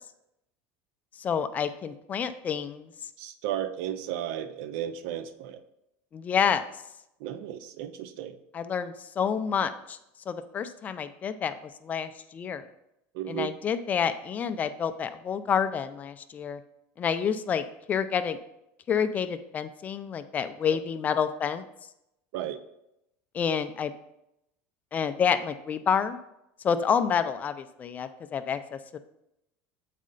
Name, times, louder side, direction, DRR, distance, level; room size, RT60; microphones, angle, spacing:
voice 1, 1.2-2.9 6.1-6.6 8.5-10.0 10.3-12.6 13.3-16.6 17.0-18.4 18.9-21.6 23.3-23.9 24.9-26.2 26.6-29.0, left 7 dB, 25° left, 10 dB, 0.4 m, -28 dB
voice 2, 3.2-5.6 7.2-8.4 13.1-13.5 22.3-22.6, right 11 dB, 70° right, 12 dB, 0.5 m, -34 dB
7.5 x 4.1 x 3.8 m, 0.84 s
cardioid pair, 150°, 7 cm